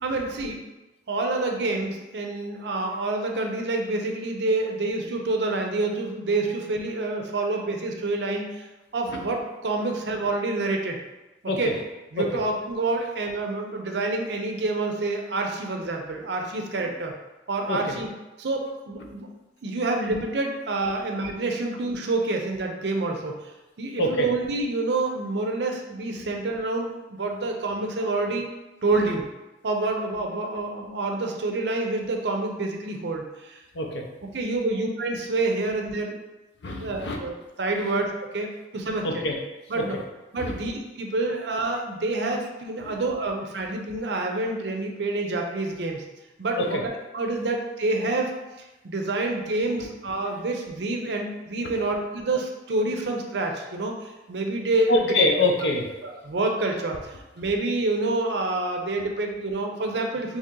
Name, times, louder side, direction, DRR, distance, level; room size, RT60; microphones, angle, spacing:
voice 1, 0.0-0.6 1.1-8.5 8.9-11.0 11.6-11.7 12.1-17.1 17.5-18.1 18.4-19.3 19.6-23.4 23.8-28.5 28.8-29.3 29.6-33.6 34.3-36.2 36.6-38.1 38.3-38.5 38.7-39.3 39.7-40.0 40.3-46.0 46.4-46.8 47.1-48.3 48.8-54.9 56.0-60.4, right 2 dB, 70° right, 2 dB, 0.5 m, -27 dB
voice 2, 24.0-24.3 29.0-29.1 33.7-34.1 36.6-37.2 39.0-39.3 39.7-40.0 40.4-40.6 42.8-42.9 46.6-46.8 50.2-50.4 51.6-51.7 54.9-55.9, left 1 dB, 80° left, 2 dB, 0.5 m, -25 dB
3.1 x 2.8 x 3.6 m, 1.0 s
head